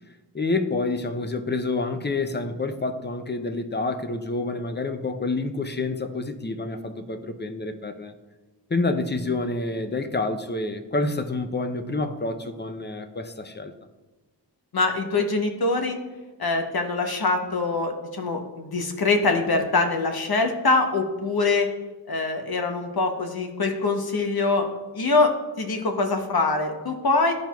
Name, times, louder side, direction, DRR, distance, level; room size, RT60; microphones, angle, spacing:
voice 1, 0.3-8.1 8.7-13.7, left 3 dB, 25° left, 7 dB, 0.6 m, -28 dB
voice 2, 14.7-16.0 16.4-21.7 22.1-24.7 24.9-27.3, left 3 dB, 60° left, 5 dB, 0.9 m, -24 dB
12.0 x 4.5 x 2.3 m, 1.2 s
wide cardioid pair, 55°, 41 cm